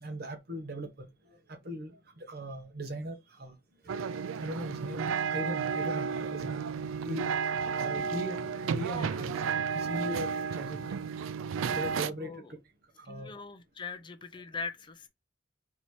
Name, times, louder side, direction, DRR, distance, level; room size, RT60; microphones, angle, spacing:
voice 1, 0.0-1.1 1.5-3.5 3.8-3.9 4.4-7.3 7.5-9.3 9.7-11.0 11.7-12.4 13.1-13.3, right 1 dB, 50° right, 1.1 m, -39 dB
sound 1, 3.9-12.1, right 6 dB, 85° right, 0.3 m, -32 dB
voice 2, 8.9-9.2 12.2-12.5 13.0-15.1, left 4 dB, 25° left, 0.4 m, -42 dB
4.1 x 2.8 x 4.6 m
head